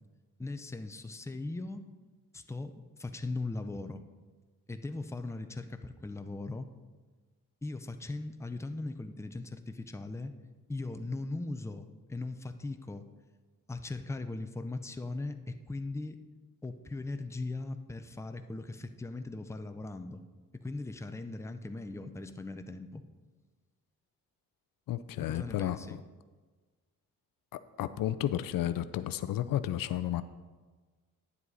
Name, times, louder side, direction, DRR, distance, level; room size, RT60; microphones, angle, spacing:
voice 1, 0.4-1.8 2.3-2.7 3.0-4.0 4.7-6.7 7.6-10.3 10.7-13.0 13.7-16.2 16.6-20.2 20.6-23.0 25.3-26.0, left 2 dB, 10° left, 8 dB, 0.5 m, -39 dB
voice 2, 24.9-26.0 27.5-30.2, left 12 dB, 70° left, 13 dB, 0.5 m, -32 dB
9.6 x 7.5 x 4.1 m, 1.3 s
cardioid pair, 85°, 35 cm